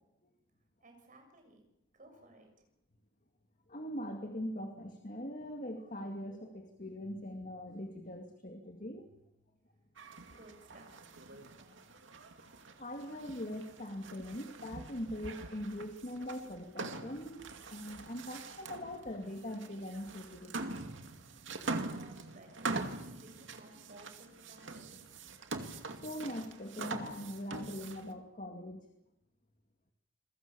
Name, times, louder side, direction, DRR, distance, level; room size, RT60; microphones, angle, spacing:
voice 1, 0.8-1.6 1.9-2.7 10.2-11.8 21.9-22.7 22.9-25.1, right 2 dB, 45° right, 4 dB, 6.8 m, -58 dB
voice 2, 3.7-9.1 12.8-20.9 25.9-28.9, equal, 40° left, 4 dB, 2.3 m, -42 dB
sound 1, 10.0-28.1, right 3 dB, 75° right, 2.4 m, -44 dB
28.0 x 22.0 x 7.0 m, 0.84 s
head